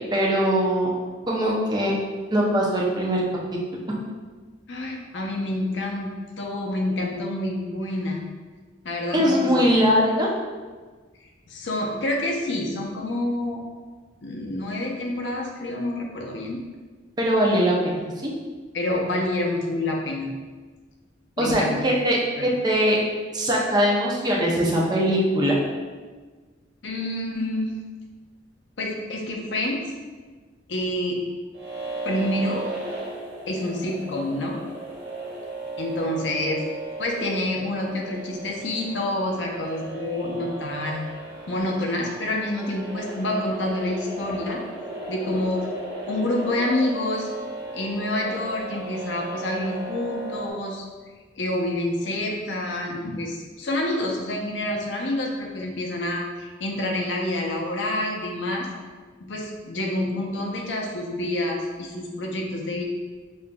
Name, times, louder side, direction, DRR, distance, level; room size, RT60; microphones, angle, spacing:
voice 1, 0.1-0.9 1.3-1.9 2.3-3.2 9.1-10.3 17.2-18.3 21.4-23.0 23.3-25.6, equal, 25° right, -3 dB, 0.5 m, -21 dB
voice 2, 4.7-8.2 8.8-9.7 11.5-13.6 14.2-16.6 18.7-20.3 21.4-21.9 22.4-22.5 26.8-27.7 28.8-29.8 30.7-31.2 32.0-32.6 33.5-34.6 35.8-36.6 37.0-41.0 41.5-44.6 45.1-45.7 46.1-47.3 47.7-50.8 51.4-58.7 59.2-62.8, left 1 dB, 80° left, 0 dB, 0.6 m, -28 dB
sound 1, 31.5-50.5, right 2 dB, 70° right, 1.1 m, -35 dB
5.4 x 2.5 x 2.2 m, 1.4 s
head